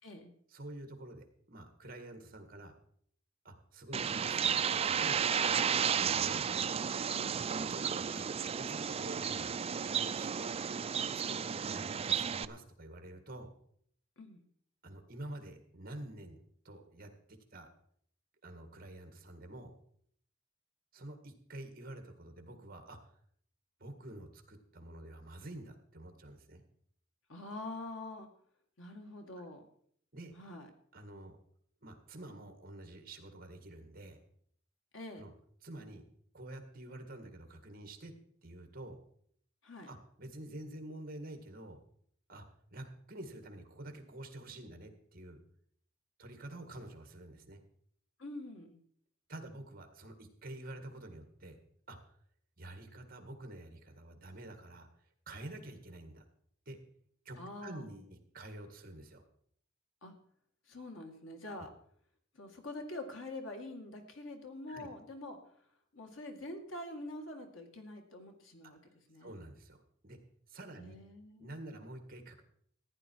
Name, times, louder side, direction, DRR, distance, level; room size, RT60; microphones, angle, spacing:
voice 1, 0.5-2.7 3.4-6.5 7.7-9.5 9.8-10.6 11.3-13.5 14.8-17.7 18.4-19.7 20.9-23.0 23.8-26.6 30.1-30.3 30.9-31.4 31.8-34.2 35.2-35.3 35.6-36.0 36.3-38.2 38.4-39.0 39.9-41.8 42.3-42.5 42.7-45.4 46.2-47.6 49.3-51.6 51.9-52.2 52.6-54.9 55.3-56.2 56.7-56.8 57.3-59.2 64.7-64.9 69.2-70.2 70.5-71.0 71.4-72.4, right 1 dB, 50° right, 7 dB, 1.9 m, -48 dB
Bird, 3.9-12.4, right 7 dB, 30° right, 0.4 m, -33 dB
voice 2, 7.1-7.4 14.2-14.4 27.3-28.3 28.8-29.6 30.4-30.7 34.9-35.2 39.6-39.9 48.2-48.8 57.4-58.0 60.0-60.1 60.7-61.7 62.3-65.4 65.9-68.8 69.1-69.3 70.8-71.6, left 2 dB, 85° left, 4 dB, 2.2 m, -45 dB
14.5 x 10.0 x 4.6 m, 0.64 s
head